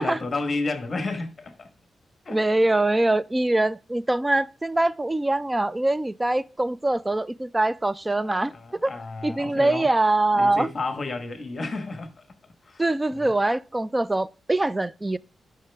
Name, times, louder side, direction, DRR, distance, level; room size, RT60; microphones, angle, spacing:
voice 1, 0.0-1.7 2.2-2.4 8.2-9.9 10.3-12.1 12.6-12.8 13.1-13.3, left 3 dB, 30° left, 1.3 m, -31 dB
voice 2, 2.3-8.5 8.8-8.9 9.2-10.7 12.8-15.2, right 2 dB, 10° right, 0.3 m, -23 dB
11.0 x 5.9 x 3.4 m
wide cardioid pair, 160°, 0 cm